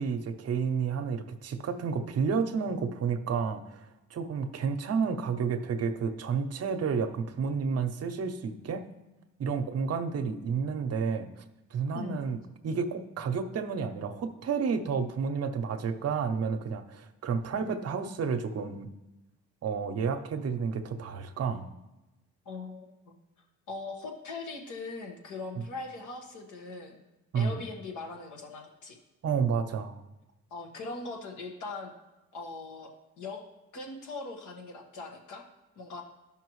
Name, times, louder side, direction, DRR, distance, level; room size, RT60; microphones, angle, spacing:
voice 1, 0.0-8.9 9.4-11.4 11.7-18.9 19.6-21.7 27.3-27.6 29.2-30.0, right 5 dB, 55° right, 8 dB, 0.8 m, -31 dB
voice 2, 22.4-23.2 23.7-27.0 27.3-29.0 30.5-31.9 32.3-33.4 33.7-35.5 35.7-36.0, left 3 dB, 80° left, 1 dB, 1.6 m, -40 dB
12.5 x 5.7 x 3.1 m, 1.0 s
cardioid pair, 90°, 30 cm